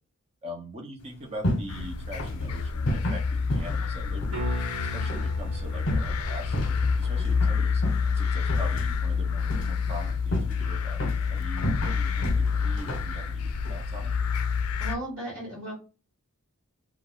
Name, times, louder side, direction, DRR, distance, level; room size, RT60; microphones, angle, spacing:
voice 1, 0.4-4.5 4.9-7.8 8.1-11.0 11.3-14.1, equal, 30° right, 2 dB, 0.6 m, -42 dB
sound 1, 1.0-14.5, equal, 55° left, 0.8 m, -34 dB
sound 2, 1.7-15.0, left 5 dB, 80° left, 0.4 m, -28 dB
sound 3, 4.3-10.3 15.0-15.1, right 2 dB, 75° right, 1.2 m, -43 dB
voice 2, 14.8-15.7, right 1 dB, 55° right, -5 dB, 1.3 m, -35 dB
2.3 x 2.3 x 3.4 m, 0.34 s
head